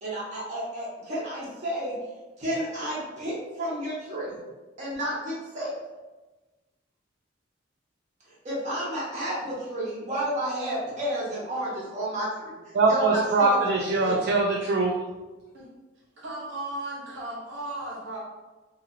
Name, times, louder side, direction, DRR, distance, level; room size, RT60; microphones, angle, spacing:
voice 1, 0.0-1.9 2.4-4.4 4.8-5.7 8.3-13.7 14.0-14.2, right 1 dB, 40° right, -7 dB, 1.2 m, -31 dB
voice 2, 12.7-15.0, right 3 dB, 55° right, -1 dB, 0.3 m, -22 dB
voice 3, 16.2-18.2, right 2 dB, 75° right, -5 dB, 1.0 m, -35 dB
2.8 x 2.7 x 2.7 m, 1.2 s
head